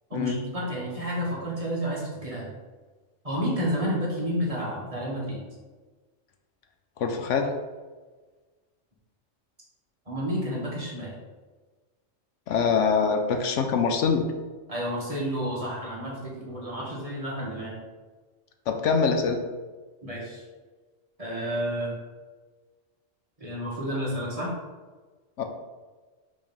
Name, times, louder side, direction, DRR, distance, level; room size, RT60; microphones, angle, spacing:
voice 1, 0.1-2.5 3.2-5.4 10.0-11.1 14.7-17.7 20.0-20.4 21.2-21.9 23.4-24.5, equal, 30° right, -5 dB, 1.7 m, -30 dB
voice 2, 7.0-7.5 12.5-14.3 18.7-19.4 25.4-25.5, left 5 dB, 75° left, 5 dB, 1.0 m, -24 dB
5.3 x 3.4 x 5.3 m, 1.3 s
omnidirectional pair, 1.3 m